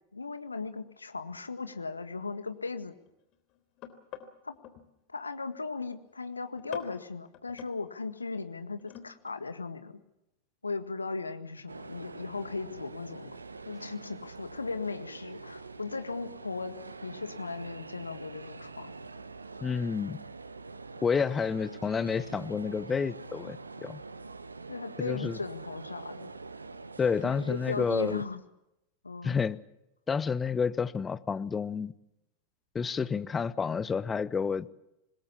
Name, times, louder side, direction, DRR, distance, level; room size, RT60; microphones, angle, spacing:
voice 1, 0.1-2.9 4.4-4.6 5.1-9.9 10.6-13.4 13.6-18.9 24.7-26.3 27.2-28.4 29.0-29.4, left 4 dB, 80° left, 9 dB, 1.8 m, -37 dB
sound 1, 1.3-1.4 1.9-4.9 5.3-5.7 6.1-6.3 6.6-7.8 8.7-9.4 9.7-9.8, left 10 dB, 40° left, 3.4 m, -47 dB
sound 2, 11.7-28.2, right 3 dB, 80° right, 1.1 m, -45 dB
voice 2, 19.6-20.2 21.0-24.0 25.0-25.4 27.0-28.2 29.2-29.6 30.1-31.9 32.7-34.7, left 6 dB, 15° left, 16 dB, 0.9 m, -30 dB
26.5 x 21.0 x 7.2 m, 0.88 s
figure-of-eight pair, 90°, 0 cm